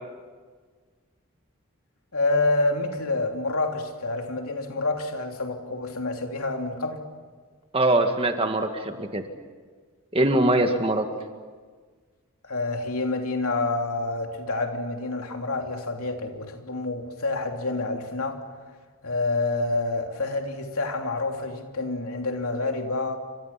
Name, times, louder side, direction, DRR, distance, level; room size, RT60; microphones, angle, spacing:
voice 1, 2.1-7.0 12.4-18.4 19.0-23.2, left 2 dB, 80° left, 3.1 m, -28 dB
voice 2, 7.7-9.2 10.1-11.1, right 1 dB, 25° right, 1.8 m, -22 dB
29.0 x 26.0 x 5.9 m
head